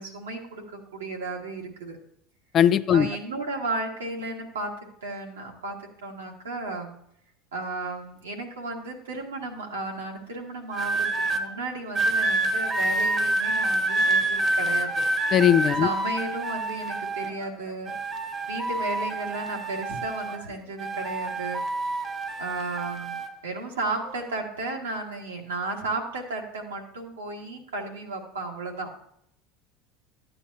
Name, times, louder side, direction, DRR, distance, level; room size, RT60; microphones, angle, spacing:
voice 1, 0.0-2.0 2.9-4.7 5.0-7.0 7.5-15.1 15.8-17.9 18.5-21.6 22.4-23.2 23.4-28.9, right 2 dB, 90° right, 0 dB, 1.8 m, -34 dB
voice 2, 2.5-3.1 15.3-15.9, left 9 dB, 45° left, 14 dB, 0.4 m, -19 dB
sound 1, 10.7-11.4 11.9-17.5 17.8-20.5 20.8-23.3 24.1-24.4, right 2 dB, 35° right, 1.1 m, -27 dB
12.5 x 8.8 x 2.7 m, 0.72 s
hypercardioid pair, 80°, 0 cm